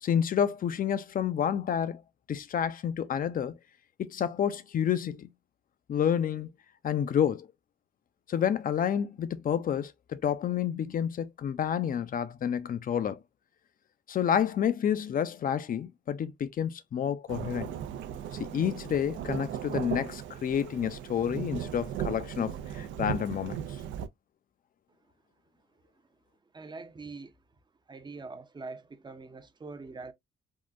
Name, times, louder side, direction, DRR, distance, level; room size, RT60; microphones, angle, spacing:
voice 1, 0.0-2.0 2.3-3.5 4.0-5.3 5.9-6.5 6.8-7.5 8.3-13.2 14.1-17.7 18.4-23.6, left 9 dB, 45° left, 0.5 m, -29 dB
Thunderstorm / Rain, 17.3-24.1, right 9 dB, 75° right, 0.4 m, -37 dB
voice 2, 26.5-27.3 27.9-30.1, right 3 dB, 20° right, 0.6 m, -43 dB
3.6 x 2.2 x 2.5 m
cardioid pair, 90°, 20 cm